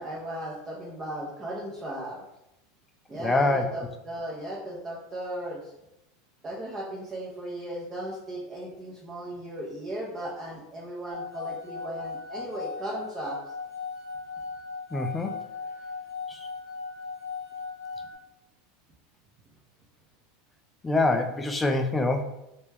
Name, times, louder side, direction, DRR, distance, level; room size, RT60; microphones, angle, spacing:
voice 1, 0.0-2.2 3.1-5.7 6.4-13.4, right 1 dB, 30° right, -4 dB, 0.6 m, -36 dB
voice 2, 3.2-3.7 14.9-15.3 16.3-16.4 20.8-22.2, left 2 dB, 15° left, 6 dB, 0.4 m, -25 dB
sound 1, 11.1-18.1, left 4 dB, 60° left, 0.6 m, -37 dB
2.2 x 2.1 x 3.2 m, 0.88 s
hypercardioid pair, 100°, 0 cm